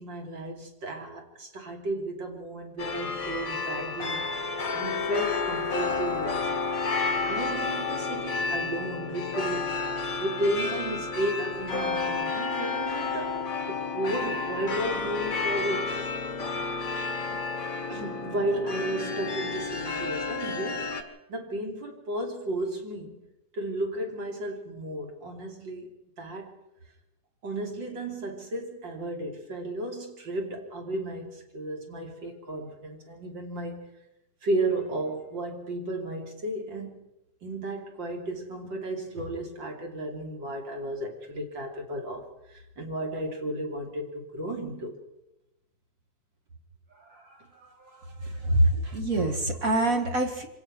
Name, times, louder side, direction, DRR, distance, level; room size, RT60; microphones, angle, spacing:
voice 1, 0.0-4.3 4.7-6.5 7.3-9.8 10.2-16.0 17.3-17.4 17.9-21.0 21.3-23.2 23.5-25.9 26.2-26.6 27.4-33.9 34.4-37.0 37.4-45.0 46.9-49.0, right 1 dB, 65° right, 3.8 m, -34 dB
sound 1, 2.8-21.0, left 4 dB, 45° left, 2.1 m, -31 dB
voice 2, 48.4-50.5, right 1 dB, 45° right, 2.3 m, -24 dB
25.0 x 17.5 x 6.0 m
omnidirectional pair, 2.2 m